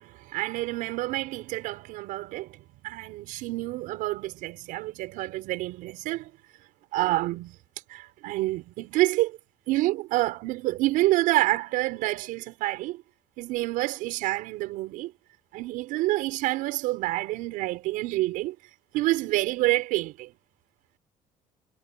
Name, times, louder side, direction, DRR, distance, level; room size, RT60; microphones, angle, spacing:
voice 1, 0.3-2.5 2.8-6.3 6.9-7.5 7.9-9.3 9.7-13.0 13.4-15.1 15.5-18.5 18.9-20.3, right 18 dB, 90° right, 6.2 m, -27 dB
cardioid pair, 120°, 14 cm